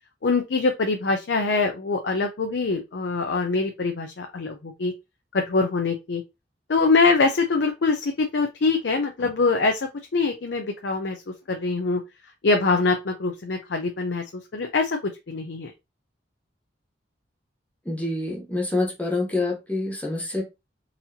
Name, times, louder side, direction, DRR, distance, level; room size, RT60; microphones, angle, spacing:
voice 1, 0.2-4.9 5.3-6.2 6.7-11.2 11.5-12.0 12.4-14.2 14.5-15.7, left 3 dB, 70° left, 0.5 m, -24 dB
voice 2, 17.8-20.4, left 2 dB, 10° left, 0.9 m, -26 dB
4.0 x 2.8 x 2.7 m
head